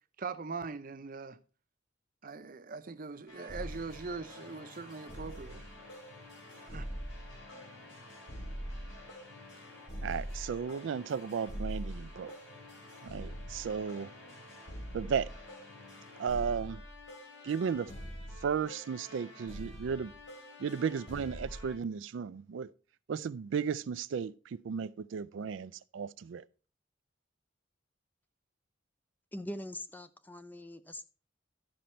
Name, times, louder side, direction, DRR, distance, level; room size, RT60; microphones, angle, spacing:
voice 1, 0.2-1.4 2.2-5.6 6.6-6.9, right 4 dB, 45° right, 0.6 m, -41 dB
sound 1, 3.3-21.8, equal, 85° left, 3.8 m, -44 dB
voice 2, 10.0-12.3 13.0-14.1 14.9-15.3 16.2-16.8 17.4-17.9 18.4-20.1 20.6-22.7 23.1-26.4, right 6 dB, 90° right, 0.4 m, -34 dB
voice 3, 29.3-31.1, left 1 dB, 10° left, 0.4 m, -42 dB
12.5 x 5.2 x 4.3 m
head